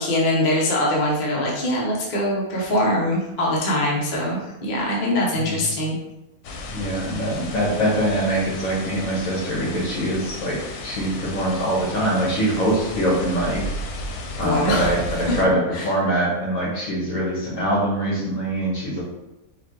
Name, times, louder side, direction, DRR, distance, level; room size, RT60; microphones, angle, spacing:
voice 1, 0.0-6.0 14.4-14.9 15.7-15.9, left 1 dB, 40° left, -4 dB, 0.7 m, -23 dB
sound 1, 6.4-15.4, left 2 dB, 90° left, 1.1 m, -34 dB
voice 2, 6.7-10.6 10.8-13.6 14.4-15.5 15.8-19.0, right 1 dB, 65° left, -5 dB, 1.7 m, -23 dB
5.0 x 2.3 x 3.0 m, 0.93 s
omnidirectional pair, 1.5 m